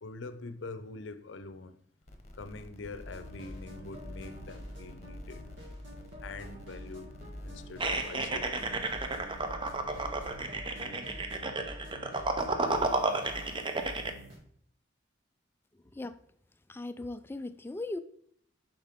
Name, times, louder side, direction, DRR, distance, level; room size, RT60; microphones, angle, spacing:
voice 1, 0.0-1.8 2.3-5.4 6.2-7.1 7.4-8.8 9.6-9.7, left 3 dB, 70° left, 11 dB, 0.6 m, -44 dB
sound 1, 2.0-10.4, left 1 dB, 35° left, 0.9 m, -50 dB
sound 2, 3.0-14.4, equal, 70° right, 2.3 m, -46 dB
sound 3, 7.8-14.1, right 3 dB, 25° right, 0.6 m, -32 dB
voice 2, 15.7-16.2 16.7-18.0, left 2 dB, 10° left, 11 dB, 0.3 m, -38 dB
7.3 x 5.0 x 3.6 m, 0.65 s
head